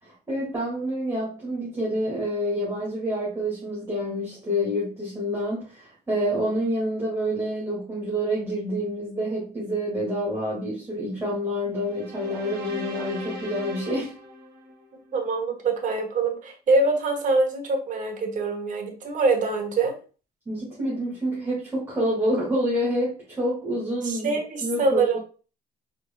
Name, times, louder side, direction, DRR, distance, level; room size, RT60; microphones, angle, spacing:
voice 1, 0.0-14.1 20.5-24.4 24.6-25.2, equal, 15° right, -7 dB, 2.0 m, -28 dB
sound 1, 11.8-15.2, left 1 dB, 70° right, 1.1 m, -38 dB
voice 2, 15.1-19.9 24.0-25.2, right 3 dB, 50° right, 4 dB, 1.1 m, -24 dB
4.3 x 3.6 x 2.2 m, 0.36 s
cardioid pair, 110°, 17 cm